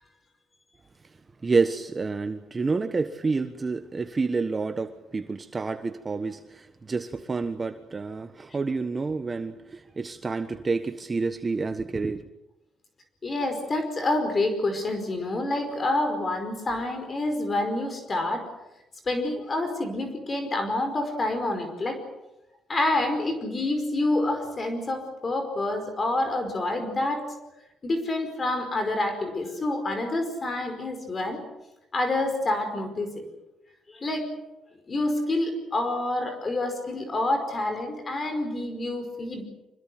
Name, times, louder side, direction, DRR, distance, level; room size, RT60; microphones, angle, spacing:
voice 1, 1.4-12.2, right 4 dB, 25° right, 8 dB, 1.3 m, -29 dB
voice 2, 13.2-18.4 19.0-22.0 22.7-27.2 27.8-31.4 31.9-33.3 33.9-34.3 34.9-39.4, left 2 dB, 30° left, 7 dB, 5.1 m, -27 dB
25.5 x 21.0 x 7.8 m, 0.96 s
cardioid pair, 95°, 0 cm